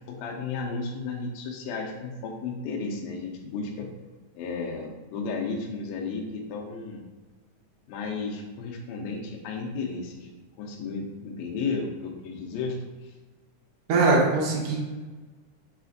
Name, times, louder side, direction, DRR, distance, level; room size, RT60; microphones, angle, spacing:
voice 1, 0.1-3.9 4.3-7.0 7.9-10.3 10.6-13.1, left 4 dB, 80° left, 1 dB, 1.6 m, -33 dB
voice 2, 13.9-14.8, right 3 dB, 65° right, -4 dB, 1.6 m, -21 dB
4.9 x 3.3 x 2.5 m, 1.3 s
omnidirectional pair, 3.7 m